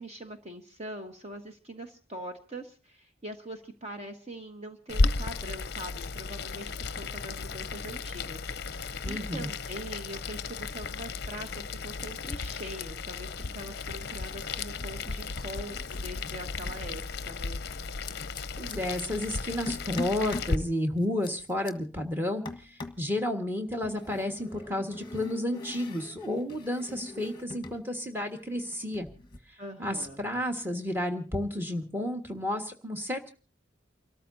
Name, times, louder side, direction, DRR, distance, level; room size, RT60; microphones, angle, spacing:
voice 1, 0.0-17.6 29.6-30.2, right 1 dB, 30° right, 4 dB, 1.2 m, -43 dB
Boiling, 4.9-20.6, left 3 dB, 55° left, 0.6 m, -34 dB
voice 2, 9.0-9.5 18.6-29.1 29.8-33.3, left 1 dB, 10° right, 3 dB, 1.6 m, -32 dB
sound 1, 13.4-13.9 14.2-16.8 17.8-19.0 19.7-20.6 21.0-21.7 22.4-23.1 23.8-27.8 28.1-29.4, left 2 dB, 20° left, 1.3 m, -43 dB
29.5 x 13.5 x 2.7 m, 0.37 s
head